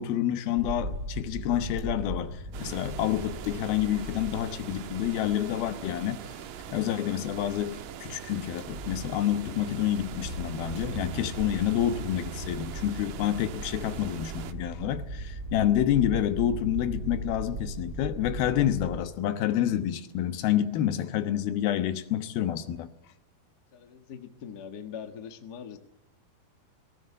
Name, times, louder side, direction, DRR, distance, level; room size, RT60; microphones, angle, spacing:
voice 1, 0.0-6.2 6.7-22.9, left 11 dB, 75° left, 2.9 m, -28 dB
sound 1, 0.5-19.0, right 1 dB, 20° right, 5.5 m, -39 dB
sound 2, 2.5-14.5, right 10 dB, 70° right, 2.4 m, -43 dB
voice 2, 23.7-25.8, left 7 dB, 60° left, 1.0 m, -42 dB
19.0 x 19.0 x 8.5 m
omnidirectional pair, 4.5 m